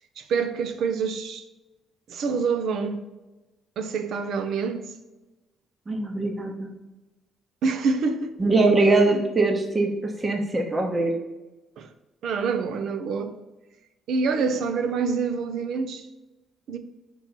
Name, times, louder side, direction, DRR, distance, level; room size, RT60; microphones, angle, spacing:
voice 1, 0.2-1.4 2.1-3.0 3.8-4.9 7.6-8.3 8.8-9.2 11.8-11.9 12.2-13.3 14.1-16.1 16.7-16.8, right 5 dB, 75° right, 0.6 m, -26 dB
voice 2, 5.9-6.7 8.4-11.1, right 2 dB, 30° right, 1.0 m, -22 dB
5.4 x 4.6 x 4.4 m
cardioid pair, 90°, 0 cm